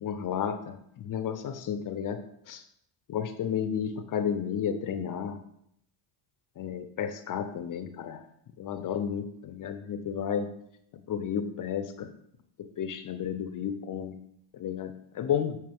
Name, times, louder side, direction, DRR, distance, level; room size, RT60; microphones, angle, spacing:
voice 1, 0.0-2.6 3.1-5.4 6.6-8.2 8.6-10.5 11.1-12.1 12.6-14.2 14.5-15.6, left 8 dB, 45° left, 10 dB, 0.5 m, -32 dB
8.6 x 3.3 x 3.5 m, 0.74 s
supercardioid pair, 80°, 49 cm